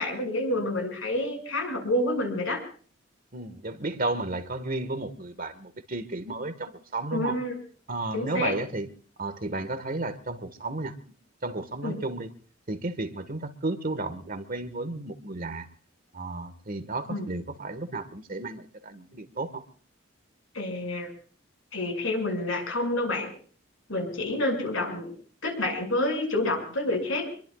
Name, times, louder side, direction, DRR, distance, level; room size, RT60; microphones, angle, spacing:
voice 1, 0.0-2.6 7.1-7.6 8.1-8.5 11.8-12.0 17.1-17.3 20.5-21.1 21.7-23.3 23.9-25.1 25.4-27.3, left 1 dB, 80° left, 6.2 m, -28 dB
voice 2, 3.3-7.4 7.9-8.9 9.2-10.9 11.4-12.3 12.7-15.7 16.1-19.6, right 2 dB, 45° right, 1.6 m, -33 dB
26.0 x 22.5 x 2.4 m
head